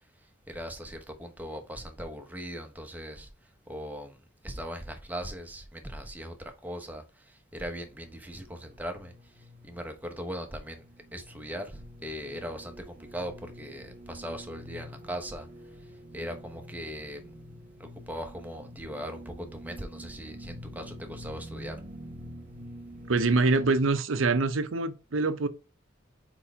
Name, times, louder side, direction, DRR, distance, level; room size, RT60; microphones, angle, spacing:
voice 1, 0.5-3.3 3.7-4.2 4.4-9.1 9.6-10.8 11.1-15.5 16.1-17.2 17.8-21.8, equal, 10° right, 1.0 m, -39 dB
sound 1, 7.7-23.7, equal, 45° right, 1.1 m, -47 dB
voice 2, 23.1-25.5, right 3 dB, 90° right, 0.7 m, -25 dB
4.6 x 4.4 x 4.8 m
head